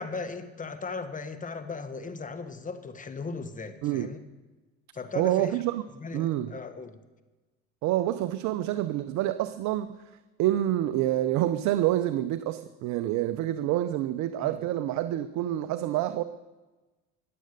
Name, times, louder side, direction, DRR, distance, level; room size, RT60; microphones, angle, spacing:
voice 1, 0.0-4.2 4.9-5.6 6.0-7.0 14.4-14.6, left 4 dB, 25° left, 1.4 m, -37 dB
voice 2, 3.8-4.1 5.2-5.8 6.1-6.6 7.8-10.0 10.4-16.2, right 13 dB, 65° right, 0.7 m, -27 dB
20.5 x 7.7 x 6.7 m
supercardioid pair, 90°, 31 cm